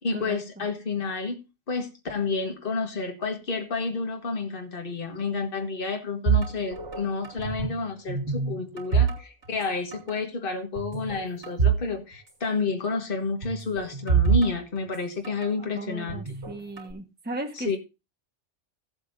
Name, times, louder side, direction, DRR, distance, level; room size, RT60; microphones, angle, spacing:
voice 1, 0.0-1.4 1.7-16.2 17.5-17.8, left 4 dB, 50° left, 1.7 m, -30 dB
sound 1, 6.3-7.8 8.1-9.7 9.9-10.2 10.8-11.9 12.1-12.2 13.4-15.5 16.1-16.9, right 6 dB, 70° right, 3.0 m, -26 dB
voice 2, 15.7-17.8, right 1 dB, 10° right, 1.3 m, -36 dB
16.5 x 8.0 x 2.6 m
omnidirectional pair, 1.2 m